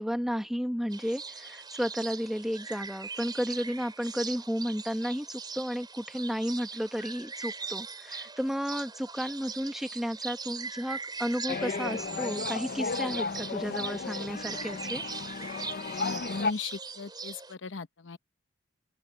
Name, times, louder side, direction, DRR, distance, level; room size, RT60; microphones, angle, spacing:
voice 1, 0.0-15.0, equal, ahead, 1.1 m, -33 dB
sound 1, 0.9-17.5, right 5 dB, 25° right, 4.7 m, -40 dB
sound 2, 11.5-16.5, left 4 dB, 50° left, 0.6 m, -34 dB
voice 2, 15.9-18.2, left 4 dB, 75° left, 1.0 m, -38 dB
open air
head